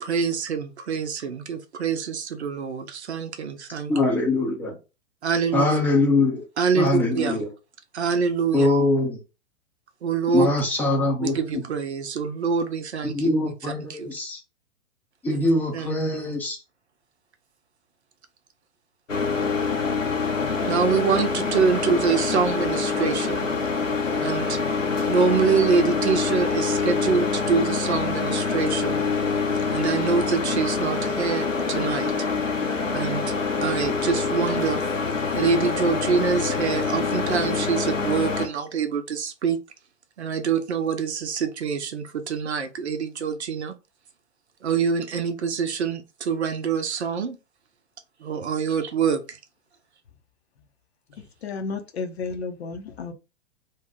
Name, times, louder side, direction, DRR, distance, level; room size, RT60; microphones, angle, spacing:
voice 1, 0.0-3.9 5.2-5.8 6.6-7.5 7.9-8.7 10.0-10.5 11.2-13.1 13.9-14.1 15.3-15.5 15.7-16.3 20.7-23.5 24.2-24.6 25.1-29.0 29.7-32.1 32.9-33.2 33.6-34.8 35.3-39.6 40.2-43.7 44.6-47.4 48.2-49.4, right 5 dB, 60° right, 0.7 m, -25 dB
voice 2, 3.9-4.8 5.5-6.4 6.8-7.5 8.5-9.2 10.3-11.4 13.1-14.4 15.2-16.6, left 2 dB, 5° left, 0.6 m, -22 dB
sound 1, 19.1-38.5, left 4 dB, 85° left, 0.8 m, -25 dB
voice 3, 51.4-53.1, left 4 dB, 55° left, 0.7 m, -32 dB
2.7 x 2.2 x 3.6 m
figure-of-eight pair, 110°, 37 cm